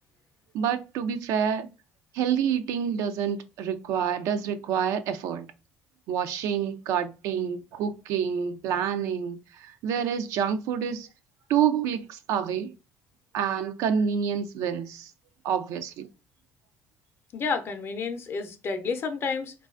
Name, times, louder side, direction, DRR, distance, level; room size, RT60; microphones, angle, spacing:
voice 1, 0.5-1.7 2.1-5.5 6.1-9.4 9.8-11.1 11.5-12.7 13.3-15.1 15.4-16.1, right 8 dB, 75° right, 0.3 m, -27 dB
voice 2, 17.3-19.5, left 5 dB, 50° left, 0.5 m, -30 dB
2.3 x 2.2 x 2.4 m
supercardioid pair, 75°, 5 cm